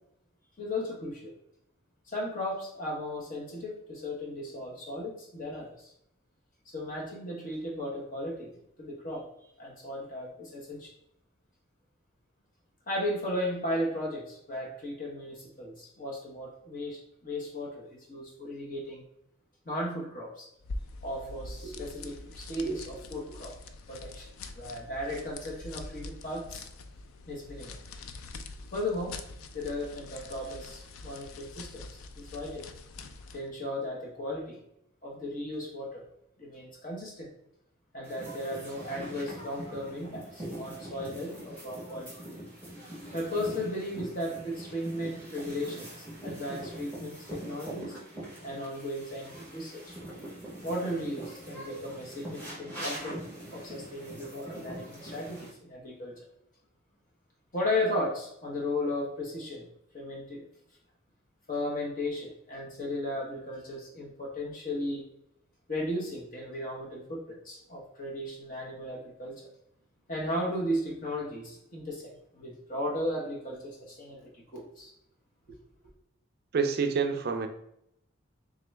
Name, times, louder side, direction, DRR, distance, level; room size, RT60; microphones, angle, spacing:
voice 1, 0.6-1.3 2.1-5.9 6.7-9.3 9.6-10.9 12.9-19.0 19.6-20.5 21.0-23.6 23.9-24.3 24.5-26.7 27.3-27.8 28.7-29.2 29.5-32.6 33.3-34.6 35.0-36.1 36.4-37.3 37.9-42.1 43.1-48.0 48.4-49.9 50.6-56.2 57.5-59.7 59.9-60.5 61.5-65.0 65.7-69.3 70.1-74.9, left 1 dB, 40° left, -3 dB, 1.2 m, -35 dB
Hat with electromagnetic sensors, 20.6-33.5, left 3 dB, 90° left, 0.4 m, -44 dB
sound 1, 38.0-55.5, right 1 dB, 10° left, 1.3 m, -43 dB
voice 2, 76.5-77.5, right 5 dB, 50° right, 6 dB, 0.4 m, -27 dB
3.7 x 2.9 x 3.3 m, 0.76 s
head